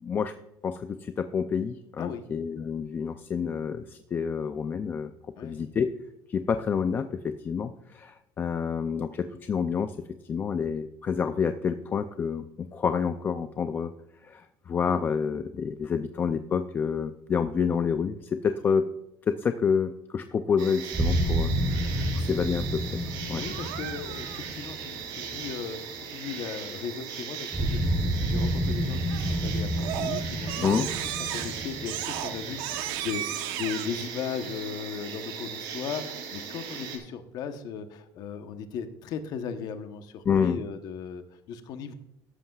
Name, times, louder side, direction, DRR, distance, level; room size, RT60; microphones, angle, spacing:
voice 1, 0.0-0.3 0.6-5.1 5.4-5.9 6.3-10.0 10.2-13.9 14.2-18.9 19.3-21.5 22.1-23.0 23.3-23.4 30.6-30.9 40.2-40.6, left 6 dB, 25° left, 9 dB, 0.4 m, -28 dB
voice 2, 5.4-5.7 23.4-30.9 31.3-41.2 41.5-41.9, left 7 dB, 50° left, 8 dB, 1.0 m, -37 dB
sound 1, 20.6-37.0, right 7 dB, 65° right, 4.0 m, -39 dB
sound 2, 20.9-25.9 27.5-33.2, right 1 dB, 15° right, 4.5 m, -30 dB
Crying sobbing, 23.4-24.4 29.1-29.4 29.8-33.9, right 12 dB, 80° right, 1.0 m, -34 dB
13.0 x 11.5 x 2.4 m, 0.86 s
cardioid pair, 150°, 8 cm